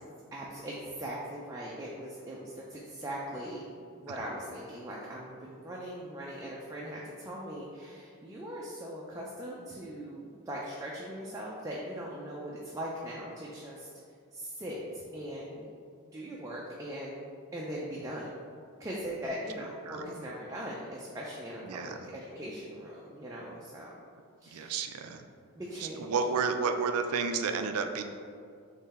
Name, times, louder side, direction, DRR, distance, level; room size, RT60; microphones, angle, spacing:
voice 1, 0.3-3.7 4.0-13.9 14.3-15.7 16.1-18.3 18.8-23.9 24.4-24.8 25.5-26.1, equal, 15° right, -4 dB, 0.4 m, -40 dB
voice 2, 19.9-20.2 21.6-22.0 24.5-25.2 25.8-28.0, right 5 dB, 80° right, 7 dB, 0.4 m, -31 dB
3.8 x 3.2 x 4.1 m, 2.3 s
head